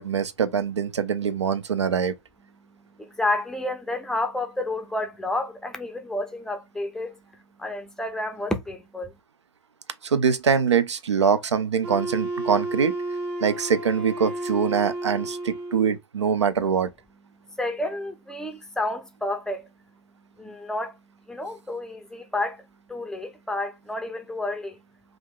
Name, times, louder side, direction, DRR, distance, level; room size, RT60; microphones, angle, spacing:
voice 1, 0.0-2.1 10.0-12.9 13.4-16.9, right 6 dB, 90° right, 0.4 m, -23 dB
voice 2, 3.0-7.2 7.6-9.1 17.5-19.7 20.4-21.0 21.3-24.8, left 2 dB, 5° left, 0.4 m, -30 dB
Wind instrument woodwind instrument, 11.8-16.0, right 1 dB, 60° right, 0.8 m, -32 dB
3.3 x 2.4 x 2.2 m
hypercardioid pair, 115°, 14 cm